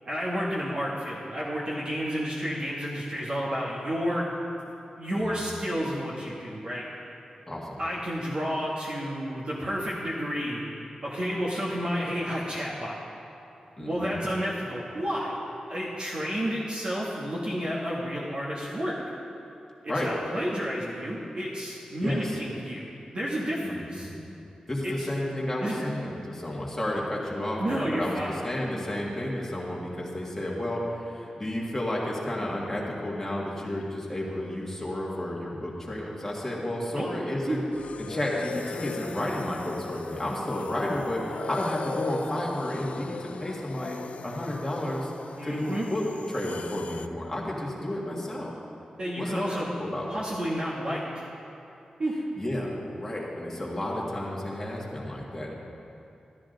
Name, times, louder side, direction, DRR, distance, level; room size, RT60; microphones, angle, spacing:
voice 1, 0.0-4.2 5.0-6.8 7.8-10.6 11.0-13.0 13.8-15.3 15.7-18.9 19.8-22.8 23.1-24.1 24.8-25.0 25.6-25.8 27.6-28.3 36.7-37.1 37.4-37.6 45.4-45.9 49.0-49.7 50.1-51.2 52.0-52.1, equal, 45° right, -6 dB, 1.4 m, -31 dB
voice 2, 7.5-7.8 13.8-14.2 19.9-20.1 22.0-22.4 23.6-24.1 24.7-37.6 38.0-45.1 45.4-48.5 49.2-50.2 52.4-55.5, left 1 dB, 15° left, -4 dB, 1.8 m, -32 dB
sound 1, 37.7-47.1, left 5 dB, 70° left, 0.4 m, -39 dB
13.0 x 12.5 x 3.9 m, 2.7 s
wide cardioid pair, 155°, 2 cm